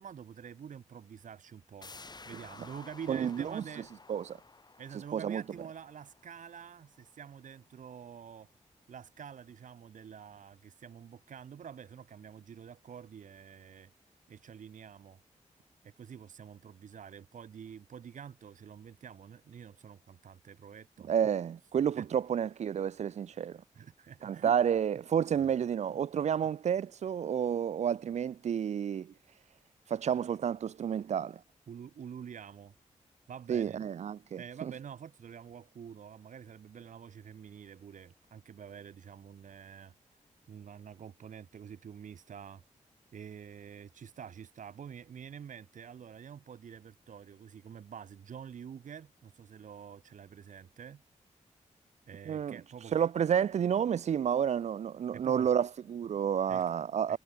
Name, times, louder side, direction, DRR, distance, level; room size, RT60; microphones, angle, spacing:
voice 1, 0.0-1.9 2.3-3.9 4.8-8.5 8.9-13.9 14.3-15.2 15.8-21.1 22.0-22.1 23.7-24.6 31.7-32.7 33.3-33.8 34.4-39.9 40.5-42.6 43.1-51.0 52.1-52.9 55.1-55.5 56.5-56.7 57.1-57.2, right 8 dB, 80° right, 1.4 m, -47 dB
sound 1, 1.8-7.3 7.6-7.7, left 3 dB, 35° left, 1.7 m, -53 dB
voice 2, 3.1-3.6 4.1-4.4 5.1-5.4 21.1-23.6 24.2-29.1 29.9-31.4 33.5-34.7 52.3-52.6 52.9-57.2, right 8 dB, 60° right, 0.4 m, -30 dB
wide cardioid pair, 95°, 13 cm